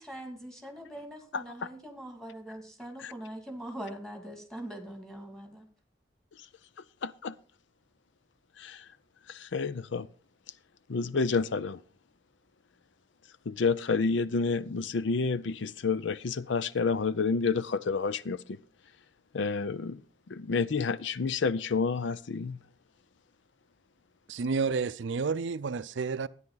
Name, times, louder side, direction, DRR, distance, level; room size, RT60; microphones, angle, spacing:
voice 1, 0.0-5.7, right 1 dB, 5° left, 2.3 m, -42 dB
voice 2, 7.0-7.4 8.6-8.9 9.3-10.1 10.9-11.8 13.5-18.6 19.3-20.0 20.3-22.6, left 4 dB, 75° left, 0.5 m, -29 dB
voice 3, 24.3-26.3, right 5 dB, 75° right, 0.5 m, -30 dB
13.0 x 9.7 x 3.9 m
head